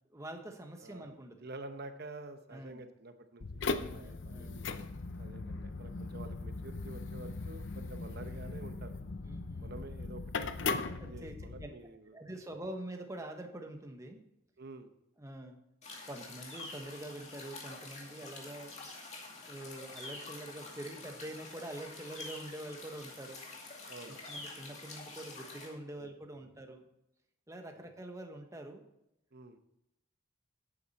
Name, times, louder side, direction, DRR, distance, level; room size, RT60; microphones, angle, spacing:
voice 1, 0.1-1.4 2.5-2.8 3.9-4.8 9.2-9.7 11.0-11.7 12.1-14.2 15.2-15.6 16.1-18.8 19.4-23.4 24.1-26.8 27.5-28.8, right 1 dB, 15° right, 4 dB, 1.1 m, -45 dB
voice 2, 0.8-1.2 1.4-4.6 5.2-9.0 9.6-12.1 14.6-14.9 23.9-24.3 26.0-26.1 26.4-26.5 27.7-27.9 29.3-29.6, right 2 dB, 50° right, 9 dB, 0.9 m, -49 dB
sound 1, 3.4-11.7, left 4 dB, 60° left, 0.7 m, -39 dB
sound 2, 15.8-25.7, left 3 dB, 30° left, 2.4 m, -47 dB
11.0 x 8.8 x 4.2 m, 0.84 s
head